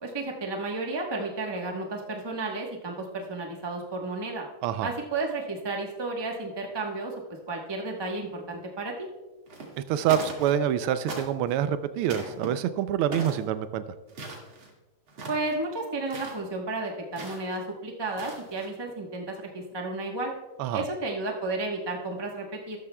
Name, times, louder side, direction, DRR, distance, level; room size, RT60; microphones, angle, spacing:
voice 1, 0.0-4.5 4.8-7.1 7.5-9.1 15.3-20.3 20.7-22.8, right 2 dB, 25° right, 1 dB, 0.5 m, -32 dB
voice 2, 4.6-4.9 9.8-13.8 20.6-20.8, right 10 dB, 85° right, 11 dB, 1.5 m, -26 dB
sound 1, 9.5-9.8 10.1-10.7 11.1-11.6 12.1-12.5 13.1-13.5 14.1-14.7 15.1-15.5 16.1-16.4 17.1-17.6 18.0-18.7, right 3 dB, 70° right, 2.8 m, -38 dB
13.5 x 13.0 x 2.2 m, 1.1 s
omnidirectional pair, 2.4 m